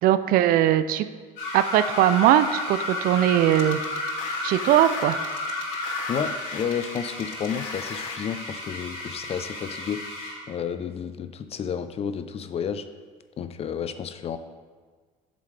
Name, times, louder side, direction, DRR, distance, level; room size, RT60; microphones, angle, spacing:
voice 1, 0.0-1.1 1.5-3.8 4.4-5.2, right 12 dB, 60° right, 13 dB, 0.4 m, -20 dB
sound 1, 1.4-10.4, left 2 dB, 65° left, 1.9 m, -32 dB
sound 2, 3.5-8.2, left 6 dB, 90° left, 0.6 m, -39 dB
voice 2, 6.1-10.0 10.5-12.9 13.4-14.4, left 7 dB, 40° left, 11 dB, 0.5 m, -31 dB
7.6 x 6.9 x 3.3 m, 1.5 s
supercardioid pair, 85°, 17 cm